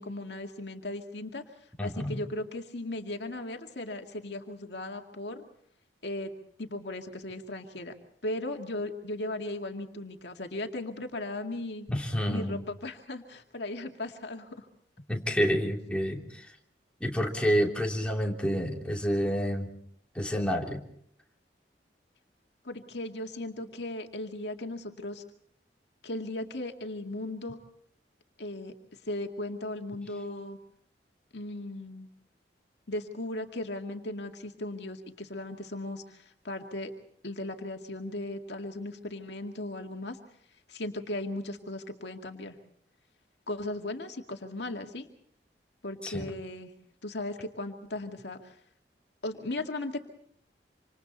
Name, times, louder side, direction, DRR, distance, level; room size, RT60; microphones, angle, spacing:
voice 1, 0.0-1.4 1.8-5.4 6.0-6.3 6.6-7.9 8.2-11.9 12.3-14.7 22.6-25.2 26.0-27.6 28.4-28.7 29.1-30.6 31.3-32.1 32.9-36.9 37.2-40.2 40.7-42.6 43.5-45.1 45.8-46.7 47.0-48.6 49.2-50.0, left 2 dB, 70° left, 4 dB, 2.2 m, -37 dB
voice 2, 1.8-2.2 11.9-12.6 15.1-16.5 17.0-19.7 20.1-20.8 46.0-46.3, equal, 5° left, 0 dB, 3.1 m, -29 dB
27.0 x 27.0 x 4.2 m, 0.67 s
head